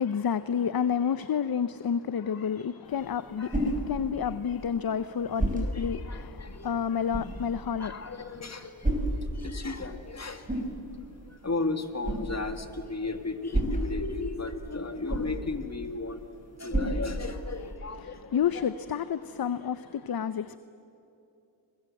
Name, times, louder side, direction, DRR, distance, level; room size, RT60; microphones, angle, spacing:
voice 1, 0.0-8.1 18.0-20.6, left 7 dB, 50° left, 14 dB, 0.7 m, -30 dB
sound 1, 2.8-17.8, right 1 dB, 15° right, 5.8 m, -34 dB
voice 2, 5.6-6.8 7.8-10.4 11.4-16.2 16.6-18.6, left 3 dB, 35° left, 7 dB, 2.1 m, -35 dB
29.5 x 22.0 x 7.9 m, 2.8 s
wide cardioid pair, 80°, 46 cm